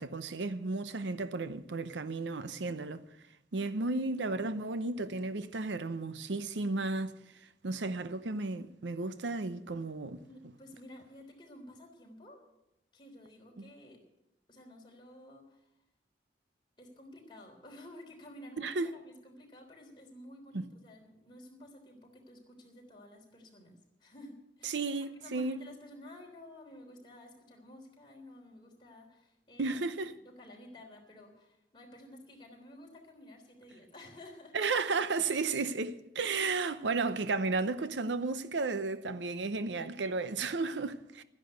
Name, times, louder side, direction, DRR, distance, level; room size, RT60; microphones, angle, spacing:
voice 1, 0.0-3.0 3.5-7.2 7.6-10.2 13.6-13.7 18.6-18.9 20.5-20.7 24.6-25.6 29.6-30.1 34.5-41.2, right 3 dB, 90° right, 0.8 m, -33 dB
voice 2, 10.2-12.4 12.9-14.0 14.5-15.7 16.8-24.8 25.2-29.8 30.1-34.6, left 1 dB, 25° left, 3.5 m, -52 dB
13.0 x 10.5 x 8.1 m
head